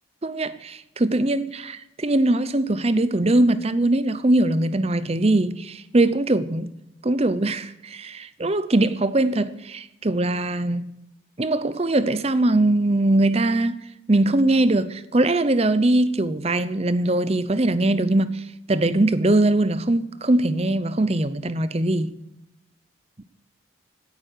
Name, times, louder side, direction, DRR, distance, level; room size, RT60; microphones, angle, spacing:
voice 1, 0.2-6.7 7.0-11.0 11.4-13.8 14.1-22.1, right 2 dB, 30° right, 0.7 m, -21 dB
16.5 x 9.6 x 6.6 m
head